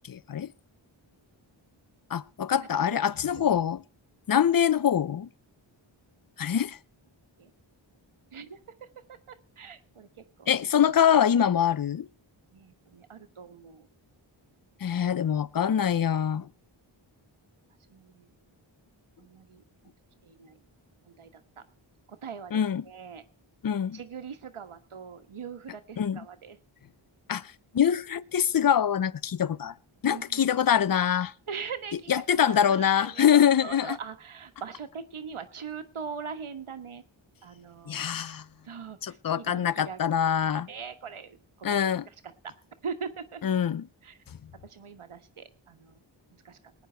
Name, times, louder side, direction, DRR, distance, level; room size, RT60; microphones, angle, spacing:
voice 1, 0.1-0.5 2.1-3.8 4.3-5.3 6.4-6.8 10.5-12.1 14.8-16.5 22.5-22.8 23.6-24.0 26.0-26.2 27.3-27.4 27.7-29.7 30.0-31.3 32.1-34.0 37.9-38.4 39.0-40.7 41.6-42.1 43.4-43.9, left 9 dB, 45° left, 0.6 m, -24 dB
voice 2, 9.1-10.1 10.4-10.5 12.5-13.9 17.9-18.3 19.2-19.6 20.2-20.6 21.0-21.6 22.2-23.2 23.9-26.6 30.1-30.5 31.5-32.1 32.4-37.0 37.4-38.1 38.7-40.0 40.5-41.8 42.8-43.4 44.0-44.2 44.6-46.0 46.4-46.6, right 6 dB, 90° right, 1.4 m, -41 dB
19.5 x 9.5 x 4.5 m
wide cardioid pair, 50°, 48 cm